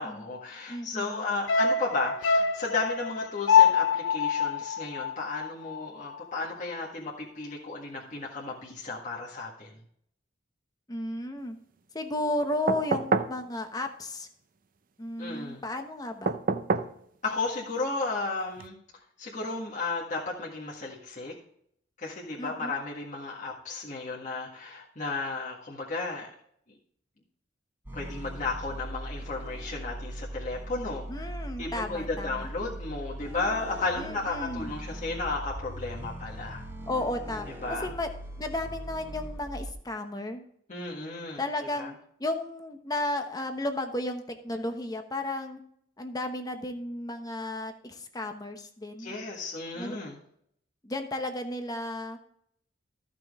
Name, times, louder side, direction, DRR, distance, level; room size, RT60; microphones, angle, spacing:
voice 1, 0.0-9.7 15.2-15.6 17.2-18.8 19.2-21.3 22.0-26.3 27.9-31.3 31.6-36.6 37.6-37.9 40.7-41.9 49.0-50.2, left 3 dB, 40° left, -3 dB, 1.7 m, -34 dB
voice 2, 0.7-1.2 10.9-11.6 11.9-14.3 15.0-16.4 22.4-22.7 31.1-32.5 34.0-34.7 36.9-37.5 37.8-38.1 38.4-40.4 41.4-41.9 42.2-45.6 46.0-49.1 49.7-50.0 50.8-52.3, left 1 dB, 20° left, 6 dB, 1.0 m, -33 dB
sound 1, 1.5-5.9 6.2-6.3, left 6 dB, 70° left, 0.6 m, -24 dB
sound 2, 12.7-13.4 16.3-17.0 18.6-18.7, right 4 dB, 45° right, 0.6 m, -27 dB
sound 3, 27.8-39.7, right 1 dB, 10° right, 1.3 m, -40 dB
14.0 x 6.1 x 3.6 m, 0.68 s
head